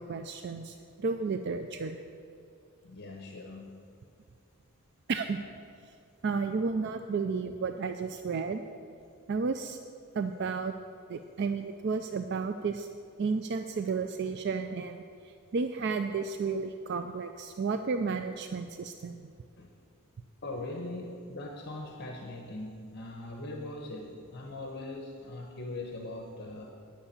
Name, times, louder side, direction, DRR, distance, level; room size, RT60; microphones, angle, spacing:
voice 1, 0.0-2.0 5.1-5.4 6.2-8.6 9.3-9.8 10.1-10.7 11.1-12.9 13.2-19.2, right 4 dB, 50° right, 8 dB, 0.4 m, -32 dB
voice 2, 2.8-3.8 19.6-19.7 20.4-26.7, left 2 dB, 50° left, 2 dB, 0.9 m, -41 dB
9.8 x 6.0 x 8.6 m, 2.4 s
head